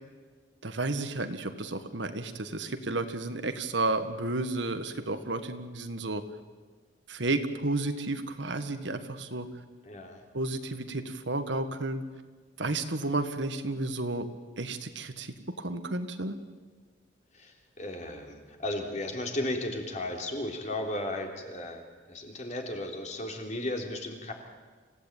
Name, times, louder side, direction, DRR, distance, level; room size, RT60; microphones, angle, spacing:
voice 1, 0.6-6.2 7.1-9.5 10.3-12.0 12.6-14.3 14.6-16.4, right 2 dB, 75° right, 8 dB, 1.7 m, -32 dB
voice 2, 9.8-10.2 17.3-24.3, left 1 dB, 40° left, 2 dB, 3.4 m, -35 dB
27.0 x 16.5 x 9.1 m, 1.4 s
head